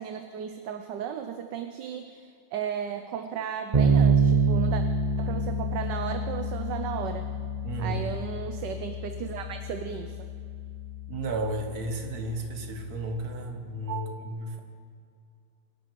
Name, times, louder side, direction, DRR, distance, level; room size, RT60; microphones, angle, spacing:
voice 1, 0.0-4.8 5.2-7.3 7.8-10.2 13.9-14.2, right 8 dB, 65° right, 7 dB, 1.3 m, -35 dB
Bass guitar, 3.7-13.4, right 3 dB, 35° right, 0.6 m, -28 dB
voice 2, 7.6-8.1 11.1-14.6, right 2 dB, 50° right, 5 dB, 1.8 m, -33 dB
26.0 x 11.0 x 4.6 m, 2.3 s
omnidirectional pair, 2.3 m